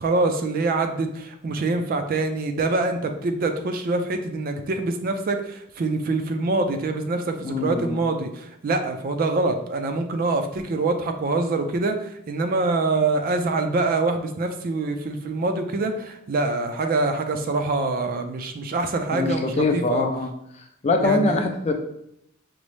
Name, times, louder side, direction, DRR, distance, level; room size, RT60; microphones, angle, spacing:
voice 1, 0.0-20.1 21.0-21.5, right 3 dB, 45° right, 6 dB, 0.4 m, -25 dB
voice 2, 7.4-8.0 19.1-20.3 20.8-21.7, left 2 dB, 30° left, 4 dB, 0.4 m, -23 dB
5.2 x 2.0 x 3.1 m, 0.75 s
head